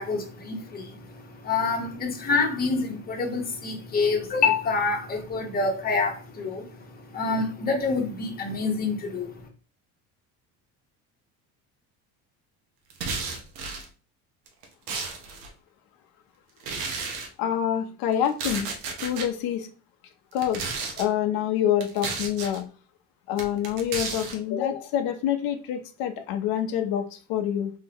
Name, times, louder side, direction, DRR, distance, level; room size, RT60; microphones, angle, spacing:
voice 1, 0.0-9.3, left 4 dB, 25° left, 1.1 m, -27 dB
sound 1, 12.9-13.9 14.5-15.5 16.6-17.3 18.3-19.3 20.3-21.1 21.8-22.6 23.4-24.4, right 4 dB, 80° right, 1.1 m, -33 dB
voice 2, 17.4-18.7 19.0-19.7 20.3-20.6 21.0-22.6 23.3-27.7, left 10 dB, 80° left, 0.8 m, -26 dB
3.8 x 3.6 x 2.9 m
cardioid pair, 145°, 35 cm